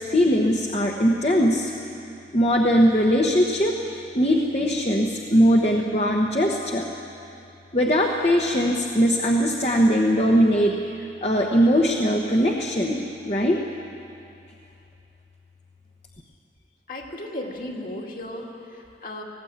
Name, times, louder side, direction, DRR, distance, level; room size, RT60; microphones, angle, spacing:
voice 1, 0.0-1.7 2.3-3.7 4.1-6.9 7.7-10.7 11.2-13.6, equal, 35° left, 0 dB, 1.1 m, -20 dB
voice 2, 16.9-19.2, left 1 dB, 50° left, -1 dB, 2.5 m, -35 dB
19.0 x 16.5 x 8.8 m, 2.7 s
head